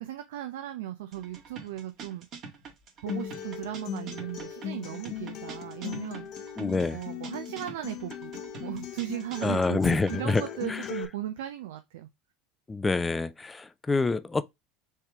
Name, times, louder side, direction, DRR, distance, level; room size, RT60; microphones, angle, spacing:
voice 1, 0.0-2.3 3.0-6.6 6.9-8.3 8.6-12.1, right 13 dB, 80° right, 0.6 m, -37 dB
sound 1, 1.1-10.4, right 5 dB, 50° right, 1.7 m, -45 dB
Acoustic guitar, 3.1-11.0, left 9 dB, 55° left, 0.9 m, -39 dB
voice 2, 6.6-7.0 9.4-10.4 10.7-10.9 12.7-14.4, left 3 dB, 15° left, 0.4 m, -27 dB
4.4 x 3.4 x 3.5 m
hypercardioid pair, 100°, 0 cm